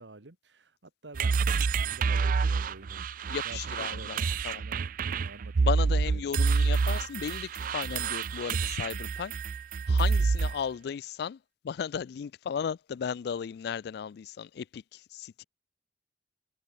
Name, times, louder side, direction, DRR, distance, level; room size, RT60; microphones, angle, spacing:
voice 1, 0.0-4.9 5.1-6.4, right 2 dB, 90° right, 1.7 m, -49 dB
sound 1, 1.1-10.6, right 4 dB, 50° right, 0.4 m, -28 dB
voice 2, 3.3-4.6 5.6-9.3 9.9-11.4 11.6-15.4, left 7 dB, 65° left, 0.3 m, -35 dB
head